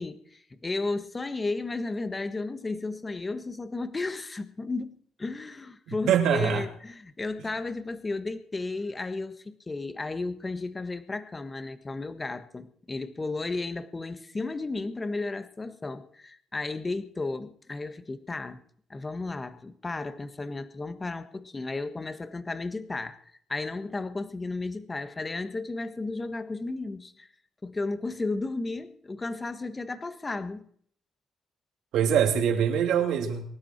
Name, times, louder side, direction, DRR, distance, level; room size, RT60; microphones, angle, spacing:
voice 1, 0.0-4.9 5.2-18.6 18.9-23.2 23.5-27.3 27.6-30.7, left 3 dB, 25° left, 1.4 m, -34 dB
voice 2, 6.1-6.6 31.9-33.4, right 8 dB, 85° right, 2.6 m, -23 dB
23.5 x 12.5 x 4.5 m
cardioid pair, 85°, 0 cm